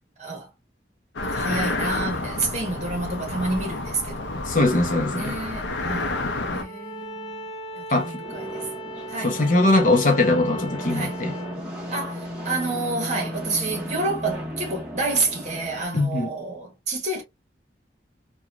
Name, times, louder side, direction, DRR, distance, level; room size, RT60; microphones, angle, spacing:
voice 1, 0.2-0.5 1.2-4.4 5.1-6.2 6.5-8.7 9.1-9.4 10.9-11.2 11.9-17.2, right 3 dB, 40° right, 1.1 m, -29 dB
sound 1, 1.2-6.6, left 2 dB, 90° left, 0.6 m, -29 dB
voice 2, 4.5-5.3 7.9-8.1 9.2-11.3 15.9-16.3, left 2 dB, 45° left, 0.6 m, -21 dB
Bowed string instrument, 6.6-11.6, equal, 20° left, 1.3 m, -38 dB
sound 2, 8.2-15.8, equal, 5° right, 1.1 m, -35 dB
2.9 x 2.2 x 2.4 m
head